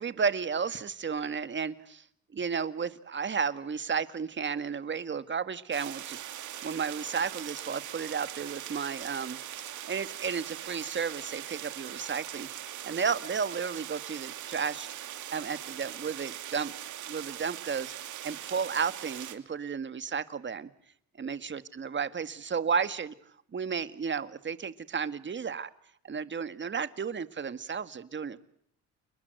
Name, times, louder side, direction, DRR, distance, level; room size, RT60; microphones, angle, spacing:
voice 1, 0.0-2.0 2.3-6.2 6.6-9.4 9.7-12.5 12.8-14.9 15.3-16.8 17.1-17.9 18.2-20.7 21.2-23.1 23.5-25.7 26.0-28.4, right 6 dB, 40° right, 1.9 m, -33 dB
sound 1, 5.7-19.4, right 12 dB, 80° right, 2.8 m, -41 dB
30.0 x 20.5 x 7.9 m
cardioid pair, 90°, 30 cm